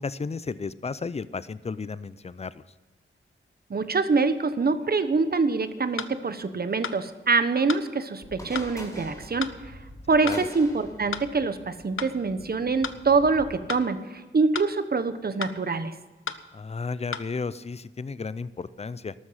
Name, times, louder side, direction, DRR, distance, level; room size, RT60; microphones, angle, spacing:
voice 1, 0.0-2.6 10.2-10.4 16.5-19.1, left 4 dB, 30° left, 17 dB, 0.5 m, -33 dB
voice 2, 3.7-9.5 10.1-15.9, right 4 dB, 50° right, 11 dB, 1.1 m, -25 dB
sound 1, 6.0-6.1 6.8-7.0 7.7-7.9 8.5-8.7 9.4-9.6 10.3-10.4 11.1-11.3 12.0-12.1 12.8-13.0 13.7-13.9 14.5-14.7 15.4-15.6 16.3-16.4 17.1-17.3, left 6 dB, 75° left, 0.8 m, -33 dB
sound 2, 8.2-13.5, equal, 15° left, 4.6 m, -45 dB
13.0 x 12.5 x 5.7 m, 1.2 s
wide cardioid pair, 110°, 21 cm